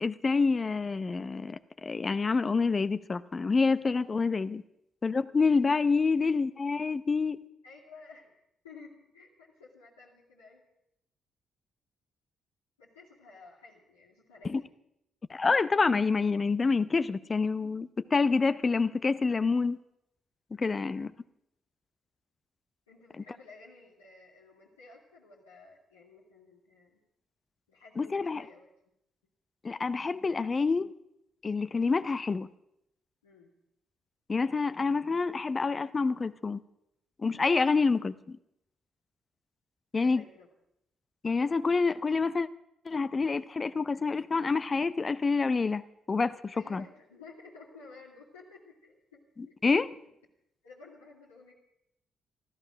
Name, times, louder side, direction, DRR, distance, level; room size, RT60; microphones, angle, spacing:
voice 1, 0.0-4.6 5.0-7.4 14.4-14.6 15.3-19.8 20.6-21.1 28.0-28.4 29.6-30.9 31.4-32.5 34.3-36.6 37.2-38.4 39.9-40.2 41.2-42.5 42.8-45.8 46.1-46.8 49.6-49.9, left 4 dB, 35° left, 14 dB, 0.7 m, -27 dB
voice 2, 5.4-5.7 7.6-8.3 8.6-10.6 12.8-14.6 22.9-27.0 27.7-28.7 33.2-33.5 37.6-38.0 39.9-40.5 46.5-49.5 50.6-51.5, left 3 dB, 85° left, -6 dB, 2.3 m, -53 dB
15.0 x 13.5 x 6.3 m, 0.81 s
figure-of-eight pair, 40°, 0 cm